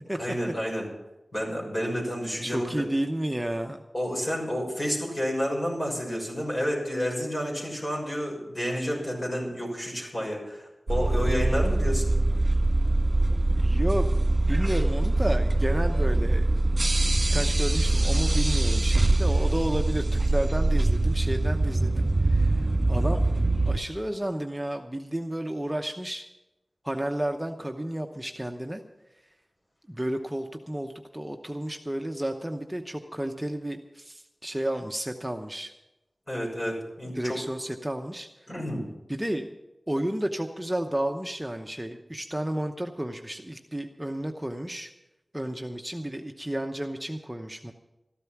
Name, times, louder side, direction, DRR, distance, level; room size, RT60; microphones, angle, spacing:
voice 1, 0.2-0.9 1.3-2.8 3.9-12.1 36.3-37.4 38.5-38.9, equal, 45° left, -2 dB, 6.5 m, -30 dB
voice 2, 2.4-3.8 13.1-13.2 13.5-16.5 17.0-23.2 23.7-26.2 26.8-28.8 29.9-35.7 37.1-38.3 39.1-39.5 39.9-44.9 45.3-47.7, right 1 dB, 15° right, 4 dB, 0.8 m, -32 dB
sound 1, 10.9-23.8, right 2 dB, 45° right, 1.8 m, -23 dB
14.0 x 12.0 x 5.9 m, 0.97 s
wide cardioid pair, 60°, 0 cm